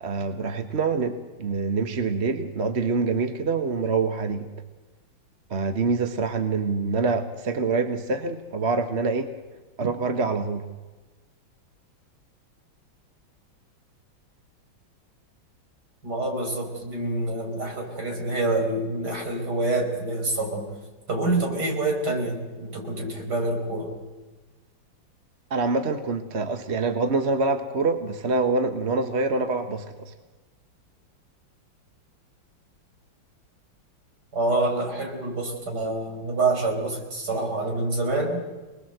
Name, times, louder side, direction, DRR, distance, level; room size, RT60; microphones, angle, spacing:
voice 1, 0.0-4.5 5.5-9.3 9.8-10.6 25.5-30.1, right 4 dB, 40° right, 8 dB, 1.3 m, -25 dB
voice 2, 16.0-20.7 21.1-23.9 34.3-38.4, right 2 dB, 55° right, 2 dB, 5.3 m, -27 dB
26.5 x 20.5 x 7.9 m, 1.2 s
omnidirectional pair, 2.1 m